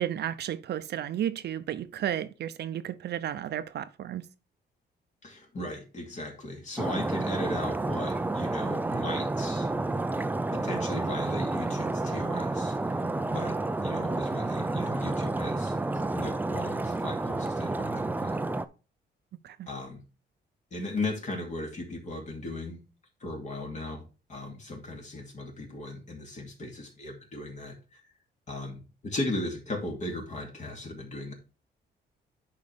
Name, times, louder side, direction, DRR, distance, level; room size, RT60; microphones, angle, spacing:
voice 1, 0.0-4.2 19.4-19.7, right 10 dB, 65° right, 0.6 m, -33 dB
voice 2, 5.2-9.7 10.1-10.2 10.5-12.8 13.2-15.8 16.1-18.6 19.7-20.0 20.7-22.8 23.2-24.0 24.3-28.0 28.5-31.3, left 2 dB, 40° left, 2.5 m, -37 dB
Stream, 6.8-18.6, right 2 dB, 10° right, 0.4 m, -30 dB
10.5 x 4.9 x 3.4 m
cardioid pair, 130°, 19 cm